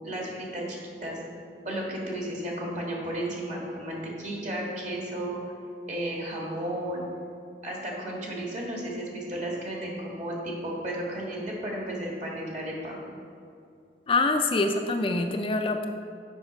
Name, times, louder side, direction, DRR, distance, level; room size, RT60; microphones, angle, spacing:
voice 1, 0.0-1.2 1.7-5.4 5.9-7.0 7.6-13.0, right 1 dB, 45° right, -2 dB, 1.7 m, -33 dB
voice 2, 14.1-15.9, left 3 dB, 30° left, 5 dB, 0.4 m, -25 dB
7.2 x 5.4 x 5.0 m, 2.5 s
head